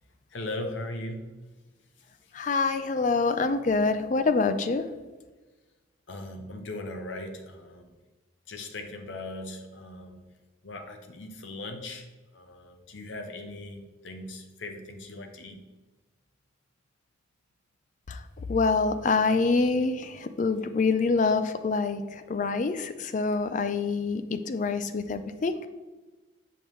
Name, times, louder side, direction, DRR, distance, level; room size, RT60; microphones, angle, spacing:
voice 1, 0.3-1.3 6.1-7.9 8.5-10.3 10.6-12.1 12.3-15.6, left 2 dB, 75° left, 5 dB, 0.8 m, -39 dB
voice 2, 2.3-4.9 18.1-25.7, left 4 dB, 40° left, 10 dB, 0.4 m, -26 dB
7.0 x 5.4 x 3.1 m, 1.2 s
head